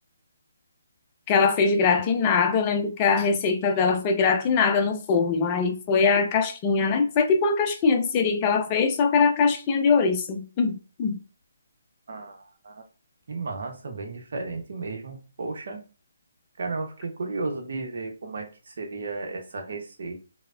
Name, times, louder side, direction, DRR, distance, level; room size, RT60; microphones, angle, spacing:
voice 1, 1.3-11.2, left 5 dB, 25° left, 0.5 m, -22 dB
voice 2, 12.1-12.8 13.3-15.8 16.6-20.2, right 3 dB, 60° right, 0.8 m, -34 dB
3.1 x 2.1 x 2.4 m
figure-of-eight pair, 150°, 0 cm